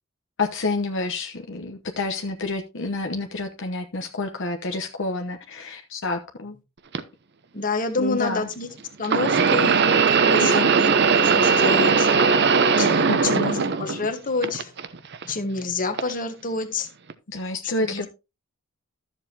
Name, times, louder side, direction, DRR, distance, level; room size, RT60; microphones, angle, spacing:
voice 1, 0.4-6.5 8.0-8.5 10.4-10.9 13.1-13.5 17.3-18.1, left 3 dB, 60° left, 5 dB, 1.0 m, -29 dB
sound 1, 6.9-7.0 9.0-14.1 14.4-15.2 16.0-16.1 17.1-17.2, right 5 dB, 55° right, 0.8 m, -19 dB
voice 2, 7.5-8.7 9.0-9.8 10.1-12.1 12.8-14.7 15.3-16.9 17.9-18.1, left 3 dB, 40° left, 8 dB, 1.4 m, -28 dB
13.0 x 7.3 x 2.8 m, 0.27 s
head